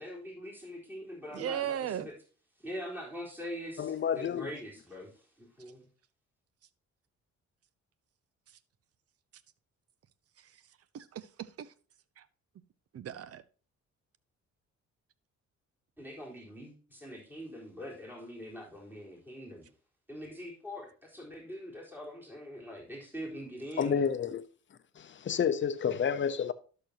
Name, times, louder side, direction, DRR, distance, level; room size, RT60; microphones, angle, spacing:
voice 1, 0.0-2.1 2.6-5.9 16.0-19.7 20.1-24.1, equal, 5° right, 4.0 m, -43 dB
voice 2, 1.3-2.1 10.4-10.5 10.9-11.7 12.2-12.3 12.9-13.4, right 10 dB, 50° right, 0.7 m, -37 dB
voice 3, 3.8-4.5 23.8-24.4 25.0-26.5, left 7 dB, 40° left, 0.8 m, -30 dB
12.0 x 6.7 x 2.8 m
cardioid pair, 90°, 30 cm